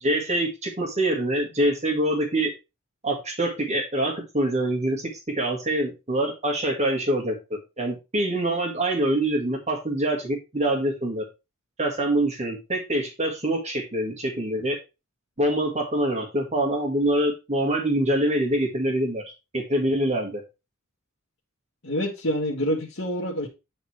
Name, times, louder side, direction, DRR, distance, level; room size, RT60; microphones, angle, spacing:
voice 1, 0.0-2.5 3.0-7.4 7.8-11.2 11.8-14.8 15.4-19.2 19.5-20.4, right 1 dB, 30° right, 1.9 m, -25 dB
voice 2, 21.8-23.5, equal, 65° left, 1.7 m, -27 dB
8.9 x 4.3 x 4.7 m
head